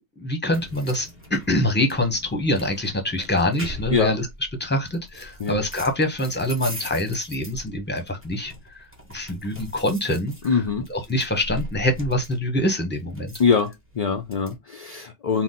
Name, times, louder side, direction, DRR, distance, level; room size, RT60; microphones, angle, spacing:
voice 1, 0.2-4.3 4.6-10.6 10.9-13.3, left 1 dB, 10° left, 0.8 m, -25 dB
sound 1, 0.5-14.6, equal, 15° right, 1.0 m, -41 dB
voice 2, 10.4-10.9 13.4-15.4, left 5 dB, 45° left, 0.5 m, -23 dB
4.0 x 2.3 x 3.7 m
omnidirectional pair, 1.1 m